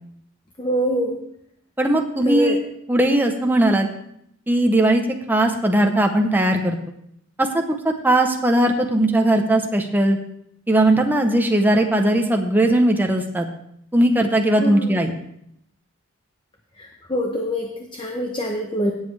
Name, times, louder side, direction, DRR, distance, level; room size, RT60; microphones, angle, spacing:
voice 1, 0.6-1.2 2.2-2.6 14.6-15.0 16.8-18.9, equal, 25° left, 2 dB, 0.8 m, -24 dB
voice 2, 1.8-2.6 2.9-3.9 4.5-5.0 5.3-6.8 7.4-7.8 8.0-10.2 10.7-13.5 13.9-15.1, right 1 dB, 10° right, 3 dB, 0.7 m, -18 dB
17.5 x 7.3 x 3.3 m, 0.74 s
head